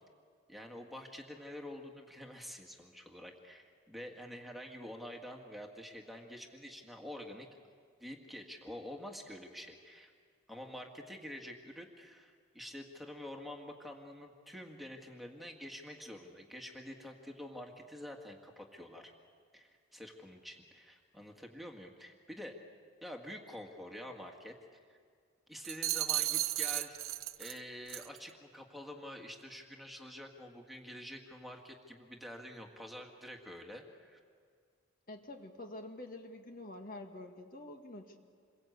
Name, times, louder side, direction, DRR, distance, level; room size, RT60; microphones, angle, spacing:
voice 1, 0.5-7.5 8.0-10.1 10.5-19.1 19.5-22.5 23.0-24.5 24.9-25.0 25.5-34.2, left 1 dB, ahead, 1 dB, 2.0 m, -47 dB
sound 1, 25.6-27.6 27.9-28.2, right 15 dB, 80° right, 0.8 m, -34 dB
voice 2, 35.1-38.2, left 2 dB, 40° left, 4 dB, 1.8 m, -47 dB
28.0 x 22.5 x 8.2 m, 2.1 s
head